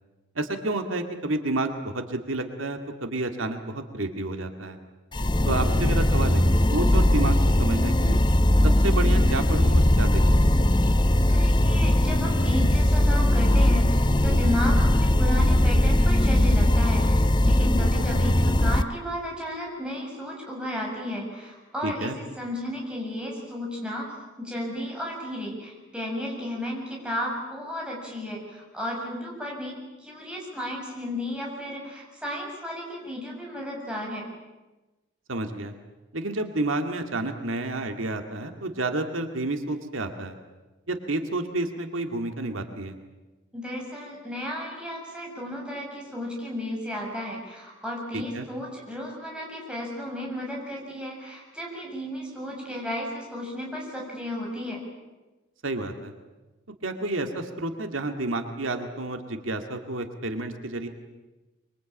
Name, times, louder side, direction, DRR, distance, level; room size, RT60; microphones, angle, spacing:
voice 1, 0.4-4.8 5.5-8.2 8.6-10.4 21.8-22.2 35.3-35.7 36.1-40.3 40.9-42.9 48.1-48.4 55.6-56.1 56.8-60.9, right 2 dB, 80° right, 6 dB, 2.2 m, -30 dB
sound 1, 5.1-18.8, left 1 dB, 20° left, 0.8 m, -20 dB
voice 2, 11.3-24.1 24.4-34.2 43.5-54.8, left 1 dB, 5° right, -2 dB, 7.0 m, -33 dB
25.5 x 24.0 x 9.0 m, 1.1 s
head